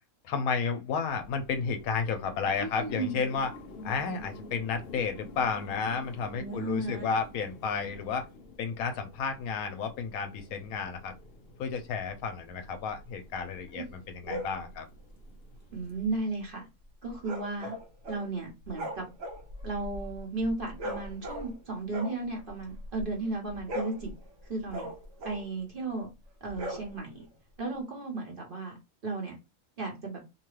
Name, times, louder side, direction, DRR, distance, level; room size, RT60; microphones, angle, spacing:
voice 1, 0.3-3.5 3.8-8.3 8.6-11.1 11.6-14.8, left 5 dB, 75° left, 1.0 m, -32 dB
sound 1, 1.0-16.2, left 2 dB, 60° left, 0.6 m, -49 dB
voice 2, 2.6-3.1 6.3-7.1 13.7-14.4 15.7-16.6 17.0-17.7 18.1-19.1 19.6-24.1 24.5-24.9 25.2-26.1 26.4-27.2 27.6-28.8 29.0-29.4 29.8-30.2, right 3 dB, 40° right, 1.0 m, -35 dB
sound 2, 14.2-14.6 17.2-18.3 18.6-21.6 21.9-23.1 23.5-25.6 26.5-27.3, equal, 65° right, 1.2 m, -39 dB
2.9 x 2.2 x 3.1 m
omnidirectional pair, 1.6 m